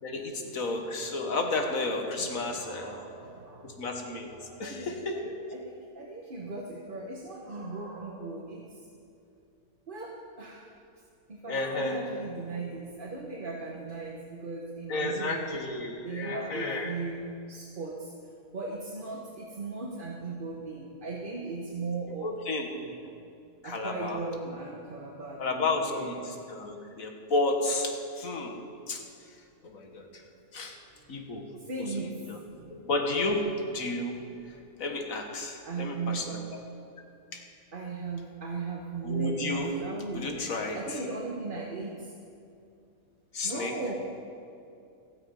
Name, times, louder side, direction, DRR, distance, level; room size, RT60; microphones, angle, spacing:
voice 1, 0.0-3.0 3.6-4.3 4.6-5.3 11.5-12.0 14.9-16.9 22.2-22.7 23.6-24.2 25.4-28.6 28.9-29.0 29.6-30.2 30.5-30.8 31.1-31.5 31.8-32.4 32.7-34.2 34.8-36.6 37.3-37.4 39.0-39.7 40.1-41.0 43.3-43.7, left 2 dB, 70° left, 3 dB, 1.9 m, -32 dB
voice 2, 2.2-3.8 4.4-8.6 9.9-10.7 11.3-15.4 16.0-18.1 18.5-23.0 23.6-26.2 31.7-32.1 32.5-32.7 34.3-34.4 35.7-36.5 37.7-40.4 40.7-42.1 43.4-43.9, right 3 dB, 40° right, -1 dB, 1.4 m, -37 dB
16.0 x 12.5 x 5.5 m, 2.5 s
omnidirectional pair, 1.5 m